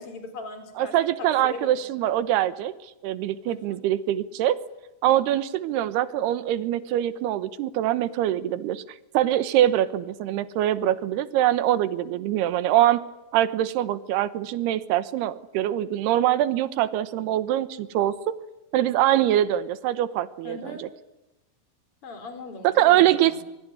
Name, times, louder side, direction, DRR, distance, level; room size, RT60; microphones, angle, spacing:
voice 1, 0.0-1.8 3.5-3.8 20.4-20.8 22.0-23.4, left 3 dB, 35° left, 6 dB, 5.0 m, -40 dB
voice 2, 0.8-4.6 5.0-8.8 9.1-13.1 13.3-18.4 18.7-20.9 22.6-23.4, right 12 dB, 90° right, 14 dB, 3.1 m, -23 dB
25.5 x 22.5 x 9.7 m, 0.97 s
omnidirectional pair, 4.5 m